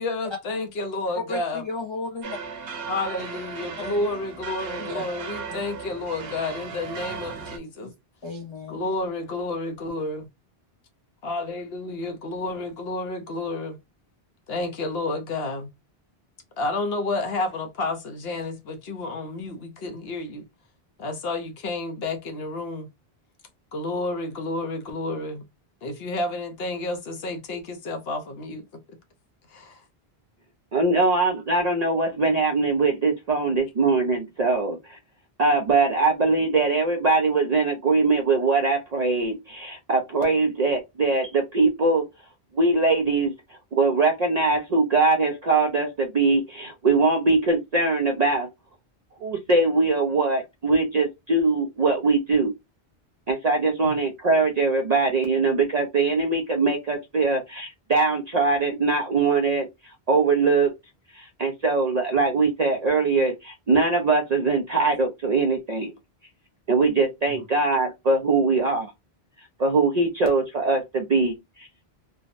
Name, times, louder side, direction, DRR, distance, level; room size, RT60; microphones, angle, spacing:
voice 1, 0.0-1.6 2.9-7.9 8.7-10.3 11.2-13.8 14.5-15.7 16.6-20.5 21.0-22.9 23.7-25.4 25.8-29.0 29.5-29.8 53.8-54.0, left 2 dB, 70° left, 0.9 m, -30 dB
voice 2, 1.1-2.4 3.8-4.0 4.8-5.1 7.8-7.9 8.2-8.8, left 3 dB, 40° left, 0.4 m, -33 dB
sound 1, 2.2-7.6, right 5 dB, 70° right, 0.9 m, -36 dB
voice 3, 30.7-35.0 35.4-42.0 42.5-43.3 43.7-48.5 49.2-52.5 53.3-59.7 60.1-60.7 61.1-65.9 66.7-68.9 69.6-71.8, right 3 dB, 50° right, 0.6 m, -22 dB
3.4 x 2.0 x 2.4 m
omnidirectional pair, 1.1 m